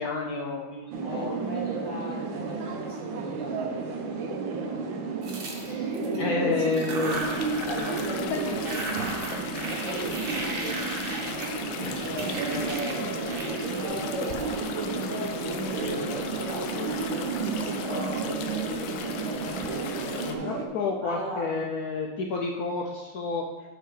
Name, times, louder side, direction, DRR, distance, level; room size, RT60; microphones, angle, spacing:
voice 1, 0.0-1.3 4.8-4.9 5.5-7.2 8.3-8.6 11.8-12.0 20.2-23.4, left 4 dB, 70° left, 0 dB, 0.9 m, -30 dB
sound 1, 0.9-20.7, right 4 dB, 85° right, 1.6 m, -32 dB
voice 2, 1.0-3.6 5.8-6.9 7.6-9.1 9.7-10.8 12.0-19.1 21.0-21.5, equal, 70° right, -6 dB, 3.3 m, -38 dB
sound 2, 5.2-6.2 6.6-8.2 8.4-14.8, right 2 dB, 45° right, 0.8 m, -37 dB
sound 3, 7.1-20.4, left 6 dB, 90° left, 1.4 m, -38 dB
7.7 x 6.6 x 3.3 m, 1.2 s
omnidirectional pair, 2.1 m